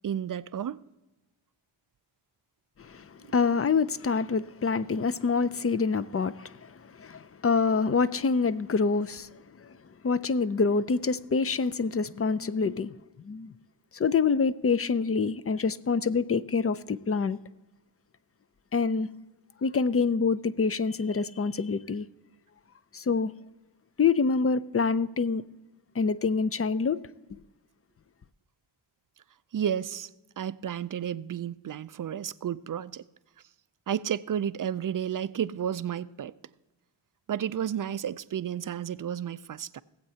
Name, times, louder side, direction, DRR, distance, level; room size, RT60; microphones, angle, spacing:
voice 1, 0.0-0.8 29.5-30.1 30.4-33.0 33.9-36.3 37.3-39.8, right 9 dB, 45° right, 0.4 m, -32 dB
voice 2, 2.8-9.3 9.6-9.7 10.0-13.0 13.2-13.5 13.9-17.4 18.7-19.1 19.6-22.1 22.9-23.3 24.0-25.4 26.0-27.0, left 5 dB, 30° left, 0.5 m, -26 dB
18.0 x 7.9 x 2.8 m
cardioid pair, 50°, 49 cm